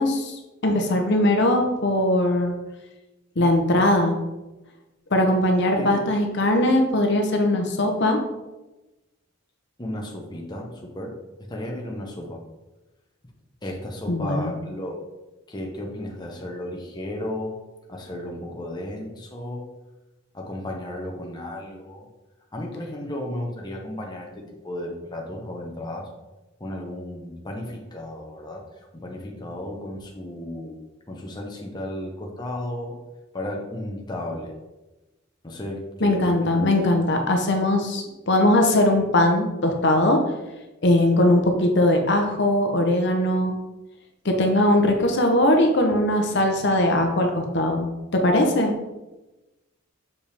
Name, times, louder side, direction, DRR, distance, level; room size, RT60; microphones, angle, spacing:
voice 1, 0.0-2.5 3.4-4.2 5.1-8.2 14.1-14.5 36.0-40.2 40.8-43.6 44.2-47.9 48.1-48.7, left 1 dB, 60° left, 3 dB, 0.9 m, -20 dB
voice 2, 9.8-11.1 11.5-12.4 13.6-15.0 15.5-17.6 17.9-19.6 20.3-22.1 22.5-26.1 26.6-30.8 31.1-33.0 33.3-34.5 35.4-36.8, left 1 dB, 20° left, 0 dB, 0.9 m, -34 dB
6.7 x 5.1 x 3.4 m, 1.1 s
head